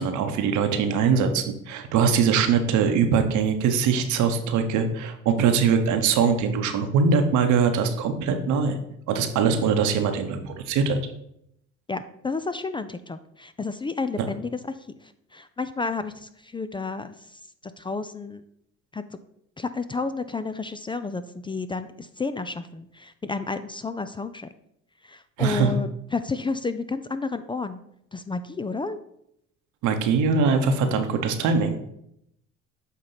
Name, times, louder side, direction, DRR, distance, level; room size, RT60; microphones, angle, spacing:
voice 1, 0.0-8.8 9.1-11.0 25.4-25.7 29.8-31.8, right 6 dB, 75° right, 7 dB, 1.0 m, -22 dB
voice 2, 11.9-18.4 18.9-19.0 19.6-24.5 25.0-27.8 28.1-29.0, left 4 dB, 15° left, 11 dB, 0.3 m, -31 dB
8.1 x 3.0 x 5.6 m, 0.76 s
supercardioid pair, 80°, 30 cm